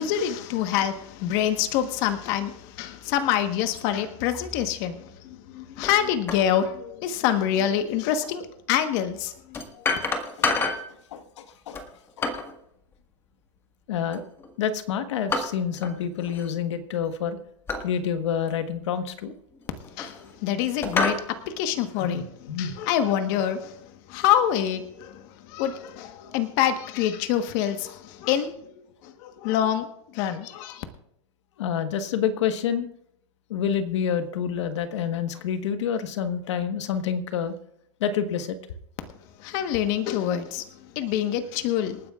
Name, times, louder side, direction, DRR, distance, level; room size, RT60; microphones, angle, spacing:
voice 1, 0.0-9.6 19.9-22.2 22.6-28.5 29.0-29.9 30.1-30.8 39.4-40.6 40.9-42.0, left 10 dB, 40° left, 1.3 m, -26 dB
sound 1, 5.8-6.0 6.3-6.5 8.2-8.3 9.5-10.9 11.7-12.6 14.1-14.5 15.3-16.0 16.2-16.5 17.7-17.9 18.5-18.6 19.5-20.3 20.8-21.3, left 3 dB, 15° left, 1.6 m, -28 dB
voice 2, 10.9-11.8 12.2-12.3 13.9-14.3 14.6-17.4 17.8-19.3 22.0-22.2 22.5-22.8 31.6-32.9 33.5-37.5 38.0-38.6, left 8 dB, 65° left, 1.3 m, -28 dB
27.5 x 9.5 x 2.4 m
supercardioid pair, 150°, 16 cm